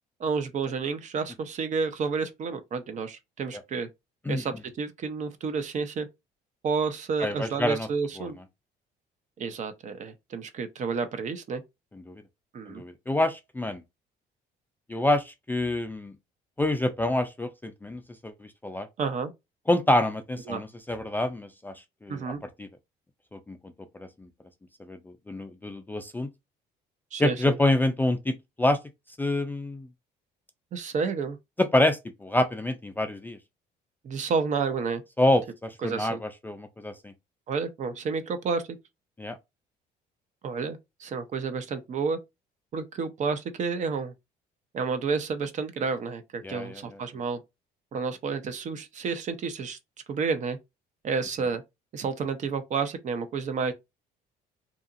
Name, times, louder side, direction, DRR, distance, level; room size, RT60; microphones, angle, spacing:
voice 1, 0.2-3.9 4.3-6.1 6.6-8.3 9.4-11.6 12.5-12.8 19.0-19.3 20.5-20.6 22.1-22.4 27.1-27.6 30.7-31.4 34.0-35.0 35.8-36.2 37.5-38.8 40.4-42.2 42.7-44.1 44.7-47.4 47.9-49.8 50.1-50.6 51.0-51.6 51.9-53.7, right 5 dB, 45° right, 0.6 m, -30 dB
voice 2, 7.2-7.9 8.2-8.3 12.1-12.2 12.7-13.8 14.9-16.1 16.6-18.3 18.6-18.9 19.7-21.7 22.0-22.2 22.6-22.7 23.3-23.6 24.0-24.1 24.9-25.0 25.3-26.3 27.2-28.8 29.2-29.9 31.6-33.4 35.2-37.1 39.2-39.4 46.4-46.8, left 1 dB, 10° left, 0.3 m, -27 dB
2.8 x 2.5 x 2.4 m
cardioid pair, 110°, 17 cm